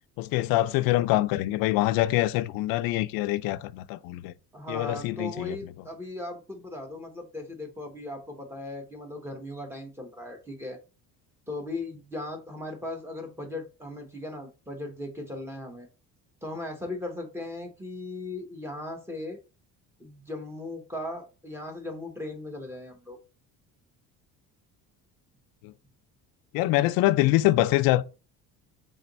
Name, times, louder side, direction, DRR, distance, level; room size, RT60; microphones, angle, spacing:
voice 1, 0.2-4.3 4.7-5.6 25.6-25.7 26.5-28.0, left 17 dB, 80° left, 0.5 m, -24 dB
voice 2, 4.5-10.8 11.5-15.9 16.4-19.4 20.0-23.2, left 2 dB, 5° right, 1.1 m, -38 dB
3.9 x 3.4 x 4.0 m
cardioid pair, 145°, 34 cm